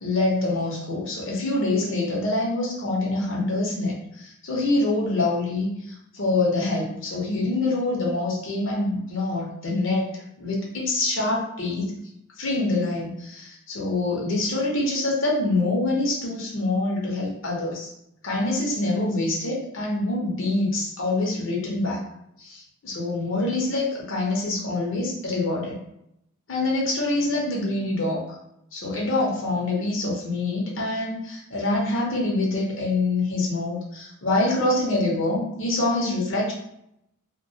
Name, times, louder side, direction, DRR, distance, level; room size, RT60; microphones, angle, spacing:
voice 1, 0.0-11.9 12.4-17.9 18.2-22.0 22.4-25.8 26.5-28.4 28.7-36.5, left 2 dB, 65° left, -3 dB, 0.7 m, -25 dB
2.2 x 2.2 x 2.7 m, 0.77 s
head